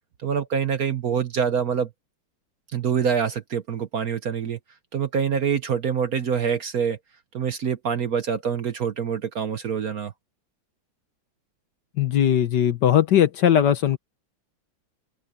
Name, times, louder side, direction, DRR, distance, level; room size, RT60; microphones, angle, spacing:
voice 1, 0.2-1.9 2.7-4.6 4.9-7.0 7.3-10.1, right 7 dB, 55° right, 1.2 m, -25 dB
voice 2, 12.0-14.0, left 10 dB, 60° left, 1.5 m, -19 dB
open air
omnidirectional pair, 2.2 m